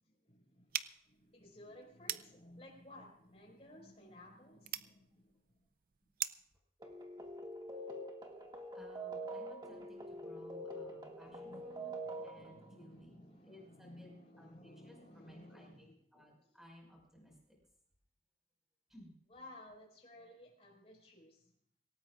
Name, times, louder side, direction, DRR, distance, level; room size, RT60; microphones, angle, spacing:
voice 1, 0.3-0.7 1.0-5.4 10.2-10.3 10.8-16.2 19.3-21.4, left 1 dB, 35° left, -1 dB, 5.2 m, -57 dB
sound 1, 0.7-6.6, right 12 dB, 50° right, 0.5 m, -45 dB
sound 2, 6.8-12.8, right 1 dB, 25° right, 2.0 m, -45 dB
voice 2, 8.7-13.1 13.5-14.1 14.4-17.3 18.9-19.1, equal, ahead, -2 dB, 5.3 m, -58 dB
26.0 x 18.0 x 2.5 m, 0.70 s
head